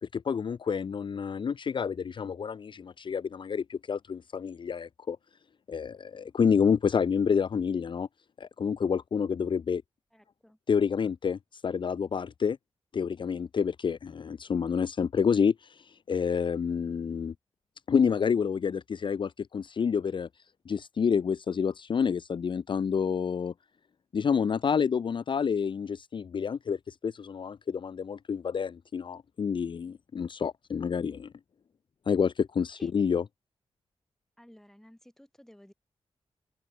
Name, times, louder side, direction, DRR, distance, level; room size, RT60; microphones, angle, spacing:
voice 1, 0.0-5.2 5.7-8.1 8.4-9.8 10.7-12.6 12.9-17.3 17.9-20.3 20.7-23.5 24.1-31.3 32.1-33.2, left 6 dB, 50° left, 0.6 m, -28 dB
voice 2, 10.1-10.6 32.8-32.9 34.4-35.7, equal, 5° left, 6.0 m, -55 dB
open air
wide cardioid pair, 125°, 10 cm